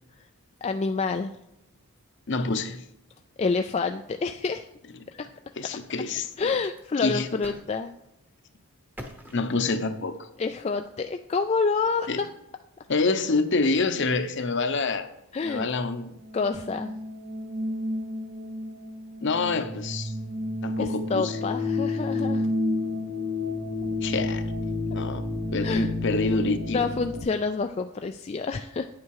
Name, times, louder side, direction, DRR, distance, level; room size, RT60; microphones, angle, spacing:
voice 1, 0.6-1.3 3.4-4.7 5.1-5.3 6.4-7.9 10.4-12.3 15.3-15.7 16.3-16.9 20.8-22.5 25.6-25.9 26.7-28.9, left 4 dB, 30° left, 0.3 m, -28 dB
voice 2, 2.3-2.8 5.6-6.3 7.0-7.4 9.3-10.3 12.1-12.2 12.9-15.1 15.4-16.1 19.2-20.1 20.6-21.4 24.0-24.5 24.9-26.8, left 3 dB, 55° left, 0.8 m, -27 dB
sound 1, 5.9-7.7 8.0-8.2 9.0-10.2, equal, 10° right, 0.9 m, -45 dB
sound 2, 16.2-27.2, left 2 dB, 70° right, 4.1 m, -30 dB
9.3 x 8.5 x 4.7 m
head